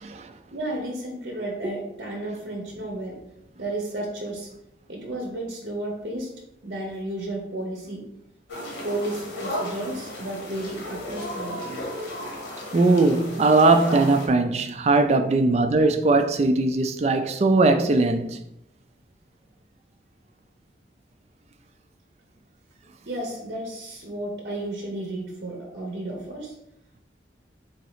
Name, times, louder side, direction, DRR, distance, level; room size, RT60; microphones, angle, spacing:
voice 1, 0.5-4.5 4.9-6.3 6.6-8.1 8.8-11.6 15.8-15.9 23.0-26.6, right 1 dB, 55° right, 0.8 m, -33 dB
sound 1, 8.5-14.3, left 1 dB, 90° left, 1.2 m, -34 dB
voice 2, 12.7-18.4, right 3 dB, 35° right, 0.3 m, -20 dB
3.9 x 2.8 x 4.8 m
head